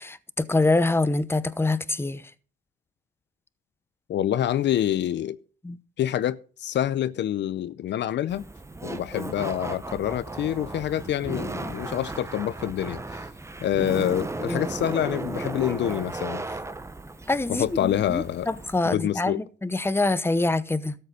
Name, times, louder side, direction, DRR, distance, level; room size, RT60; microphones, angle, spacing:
voice 1, 0.0-2.2 5.6-5.8 14.0-14.1 14.5-14.6 17.3-21.0, left 2 dB, 10° left, 0.9 m, -25 dB
voice 2, 4.1-5.4 6.0-8.5 8.8-13.2 13.6-16.6 17.5-18.5 18.8-19.4, left 11 dB, 65° left, 0.6 m, -27 dB
Laughter, 8.3-18.8, right 2 dB, 15° right, 1.1 m, -35 dB
13.0 x 7.7 x 6.5 m
cardioid pair, 90°, 20 cm